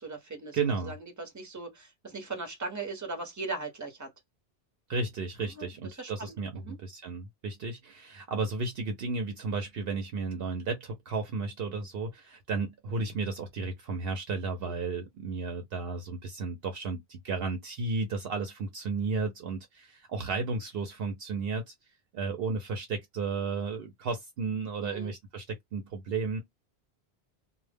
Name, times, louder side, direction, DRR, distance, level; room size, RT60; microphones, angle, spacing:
voice 1, 0.0-4.1 5.4-6.8 14.6-14.8 24.8-25.1, right 3 dB, 20° right, 0.7 m, -39 dB
voice 2, 0.5-0.9 4.9-21.7 22.1-26.4, right 4 dB, 70° right, 0.8 m, -33 dB
2.1 x 2.1 x 3.3 m
omnidirectional pair, 1.1 m